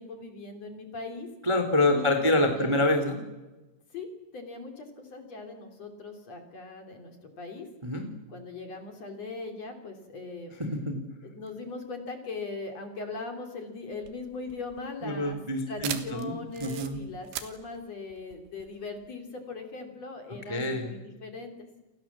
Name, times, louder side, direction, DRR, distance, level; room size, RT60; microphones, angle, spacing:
voice 1, 0.0-1.3 1.8-2.1 2.4-2.7 3.9-4.1 4.3-7.7 8.3-10.6 11.2-15.4 15.7-21.7, left 3 dB, 35° left, 5 dB, 3.5 m, -40 dB
voice 2, 1.4-3.2 7.8-8.1 10.6-11.0 15.0-16.3 16.6-17.0 20.5-20.9, left 1 dB, 10° right, 5 dB, 1.5 m, -26 dB
sound 1, 13.9-19.1, right 11 dB, 70° right, 3.7 m, -40 dB
29.5 x 24.0 x 7.4 m, 1.1 s
omnidirectional pair, 5.8 m